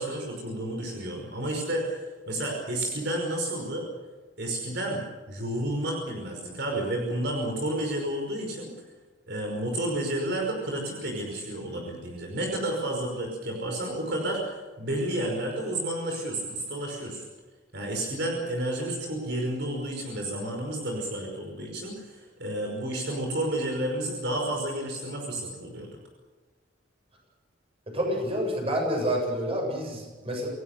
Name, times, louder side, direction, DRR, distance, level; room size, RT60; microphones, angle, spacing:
voice 1, 0.0-3.9 4.4-8.7 9.3-17.2 17.7-25.9, right 1 dB, 60° right, 0 dB, 5.5 m, -31 dB
voice 2, 27.9-30.5, equal, 30° right, 1 dB, 7.8 m, -28 dB
28.0 x 18.0 x 6.8 m, 1.3 s
head